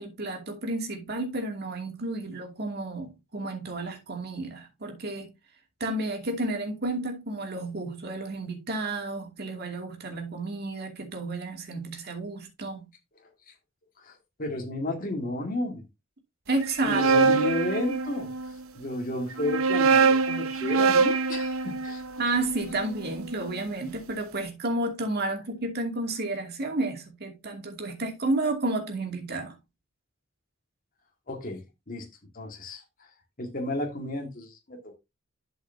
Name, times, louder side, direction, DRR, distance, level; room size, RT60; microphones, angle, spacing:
voice 1, 0.0-5.3 5.8-12.9 16.5-17.4 22.2-29.6, right 2 dB, 50° right, 2.5 m, -31 dB
voice 2, 14.0-15.8 16.8-22.0 31.3-32.1 32.3-33.1 33.4-35.0, left 1 dB, 45° left, 2.0 m, -33 dB
sound 1, 16.6-18.5 19.3-23.5, right 4 dB, 85° right, 0.9 m, -24 dB
11.5 x 5.6 x 2.8 m
head